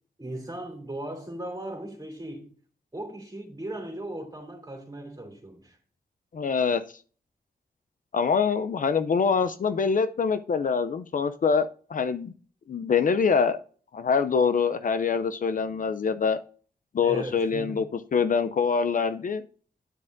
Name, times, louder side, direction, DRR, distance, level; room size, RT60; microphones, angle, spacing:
voice 1, 0.2-2.5 2.9-5.8 17.0-17.9, right 1 dB, 25° right, 2.8 m, -37 dB
voice 2, 6.3-6.8 8.1-12.3 12.7-13.6 13.9-16.4 16.9-17.8 18.1-19.4, left 5 dB, 55° left, 0.5 m, -24 dB
10.0 x 7.2 x 2.6 m
wide cardioid pair, 105°, 16 cm